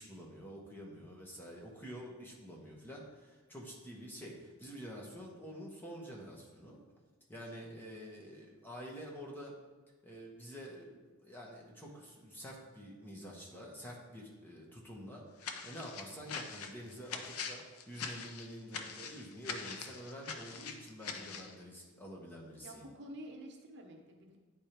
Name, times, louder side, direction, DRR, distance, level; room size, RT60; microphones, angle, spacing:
voice 1, 0.0-6.8 7.3-9.5 10.0-22.9, equal, 10° left, -3 dB, 1.1 m, -48 dB
sound 1, 15.4-21.5, left 5 dB, 75° left, 0.6 m, -43 dB
voice 2, 22.6-24.4, equal, 50° right, 2 dB, 0.8 m, -50 dB
9.4 x 3.5 x 4.4 m, 1.3 s
head